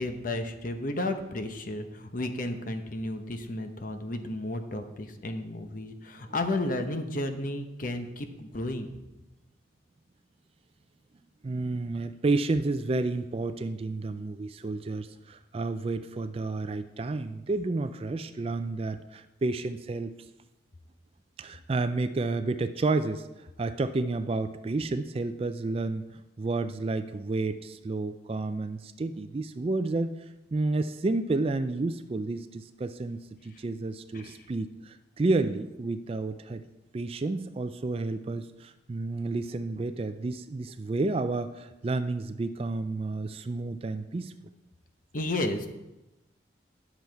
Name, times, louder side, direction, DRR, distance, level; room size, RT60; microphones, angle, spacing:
voice 1, 0.0-8.9 33.6-33.7 34.1-34.4 45.1-45.7, left 1 dB, 45° left, 7 dB, 0.8 m, -33 dB
voice 2, 11.4-20.1 21.4-30.1 30.5-36.6 36.9-44.3, right 3 dB, 30° right, 11 dB, 0.3 m, -31 dB
9.7 x 7.0 x 4.6 m, 1.0 s
head